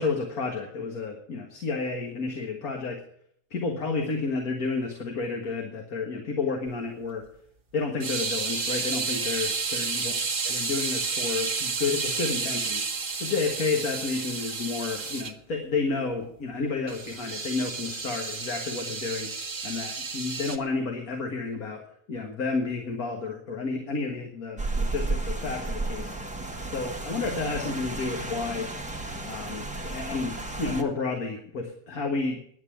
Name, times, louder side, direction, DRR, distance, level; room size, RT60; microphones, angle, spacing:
voice 1, 0.0-3.0 3.5-7.2 7.7-10.1 10.5-12.9 13.2-19.3 19.6-21.8 22.1-26.1 26.7-28.7 29.2-32.4, left 4 dB, 60° left, 1 dB, 2.0 m, -31 dB
sound 1, 8.0-15.3 16.9-20.6, right 4 dB, 35° right, 1.1 m, -31 dB
Rain, 24.6-30.8, right 2 dB, 5° right, 1.1 m, -33 dB
10.5 x 8.8 x 8.8 m, 0.68 s
omnidirectional pair, 1.7 m